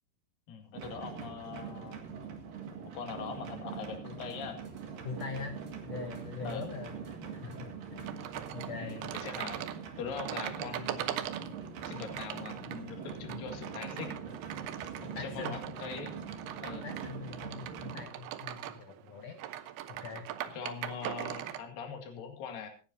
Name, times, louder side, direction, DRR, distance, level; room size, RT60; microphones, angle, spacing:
voice 1, 0.5-2.0 2.9-4.6 6.4-6.6 8.7-9.6 10.0-11.2 11.8-14.2 15.0-16.1 16.6-16.9 20.4-22.7, left 6 dB, 60° left, 4 dB, 3.7 m, -42 dB
sound 1, 0.7-18.1, right 6 dB, 60° right, 3.4 m, -43 dB
sound 2, 4.3-9.8, right 3 dB, 25° right, 1.7 m, -58 dB
voice 2, 5.0-5.6 5.8-8.2 8.5-9.1 15.0-15.6 16.8-19.4 19.9-20.3, left 5 dB, 80° left, 6 dB, 1.4 m, -42 dB
sound 3, 8.0-21.7, right 12 dB, 80° right, 2.8 m, -41 dB
25.0 x 9.7 x 2.7 m, 0.36 s
omnidirectional pair, 4.7 m